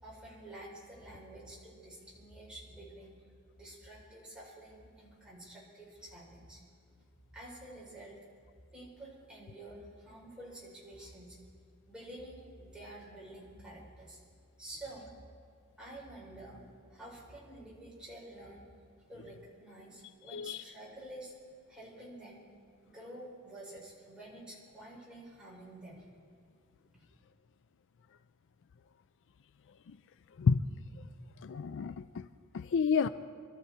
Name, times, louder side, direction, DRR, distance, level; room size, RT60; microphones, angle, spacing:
voice 1, 0.0-3.1 3.6-6.6 7.3-8.2 8.7-11.4 11.9-14.2 14.6-15.2 15.8-18.7 19.1-21.3 21.7-22.4 22.8-26.0 26.9-27.0, right 1 dB, 5° right, -5 dB, 4.5 m, -49 dB
voice 2, 31.4-32.2 32.5-33.1, left 5 dB, 60° left, 13 dB, 0.4 m, -29 dB
25.0 x 13.0 x 4.3 m, 2.2 s
head